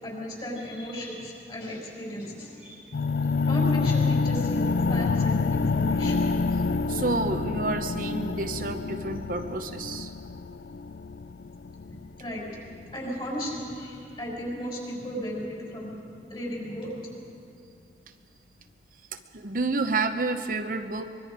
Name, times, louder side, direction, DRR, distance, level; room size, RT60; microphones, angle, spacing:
voice 1, 0.0-2.9 3.4-6.2 12.2-12.4 12.9-15.9 16.3-17.1, equal, 30° left, -2 dB, 5.8 m, -35 dB
sound 1, 2.9-12.9, left 4 dB, 65° left, 0.4 m, -27 dB
voice 2, 6.9-10.1 19.1-21.2, right 3 dB, 50° right, 6 dB, 0.8 m, -29 dB
24.0 x 22.5 x 5.0 m, 2.5 s
head